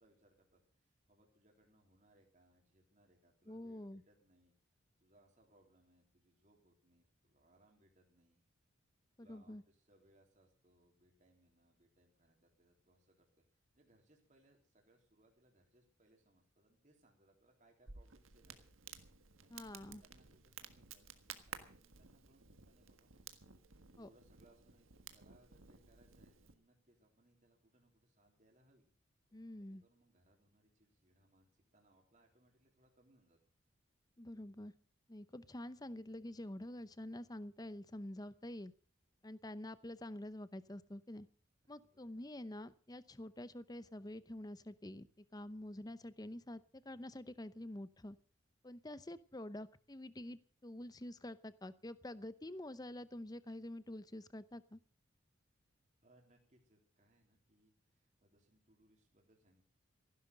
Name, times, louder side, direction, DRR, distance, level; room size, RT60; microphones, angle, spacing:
voice 1, 0.0-4.5 5.0-8.4 9.2-13.3 13.7-18.7 19.4-23.5 23.9-28.9 29.3-33.4 41.6-42.1 56.0-59.6, right 1 dB, 40° right, 1 dB, 3.5 m, -71 dB
voice 2, 3.5-4.0 9.2-9.6 19.5-20.0 24.0-24.1 29.3-29.8 34.2-34.7 35.1-38.7 39.2-41.3 41.7-48.2 48.6-54.8, left 1 dB, 20° left, 15 dB, 0.7 m, -47 dB
Crackle, 17.9-26.5, right 7 dB, 85° right, 1.6 m, -55 dB
15.5 x 11.5 x 6.5 m, 0.42 s
head